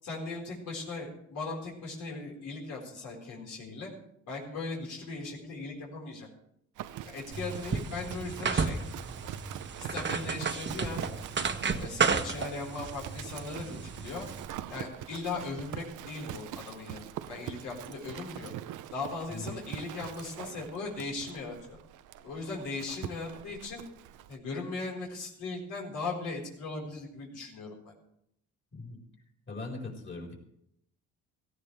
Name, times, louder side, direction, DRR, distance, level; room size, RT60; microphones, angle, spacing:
voice 1, 0.0-3.9 4.3-6.3 7.0-8.8 9.8-11.1 11.8-14.3 14.7-17.0 17.3-18.5 18.9-21.8 22.2-23.8 24.3-27.9, left 3 dB, 80° left, -2 dB, 4.7 m, -38 dB
Livestock farm animals working animals, 6.8-24.4, right 12 dB, 80° right, 0.7 m, -44 dB
sound 1, 7.3-14.5, right 5 dB, 40° right, 1.3 m, -33 dB
voice 2, 29.5-30.3, left 3 dB, 40° left, 0 dB, 4.5 m, -40 dB
17.5 x 15.0 x 3.4 m, 0.76 s
cardioid pair, 90°, 30 cm